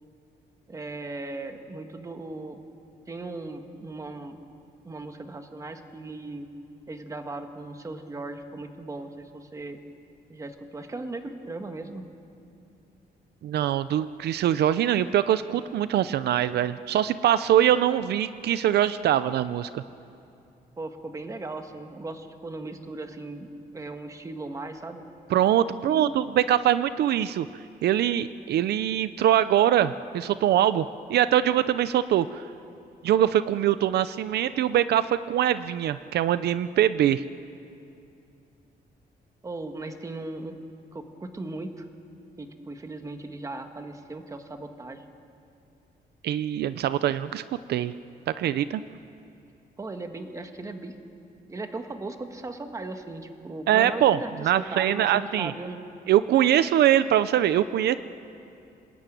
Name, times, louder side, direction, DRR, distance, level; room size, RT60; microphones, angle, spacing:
voice 1, 0.7-2.6 3.1-4.4 4.8-6.5 6.9-9.8 10.3-12.1 20.8-25.0 25.8-26.4 39.4-40.5 40.9-41.9 42.4-45.0 49.8-51.0 51.5-55.8, right 2 dB, 20° right, 6 dB, 1.5 m, -37 dB
voice 2, 13.4-19.8 25.3-27.5 27.8-32.4 33.0-37.2 46.2-47.4 47.7-47.9 48.3-48.8 53.7-55.5 56.1-58.0, right 11 dB, 75° right, 14 dB, 0.6 m, -23 dB
26.5 x 20.0 x 9.2 m, 2.7 s
cardioid pair, 175°, 17 cm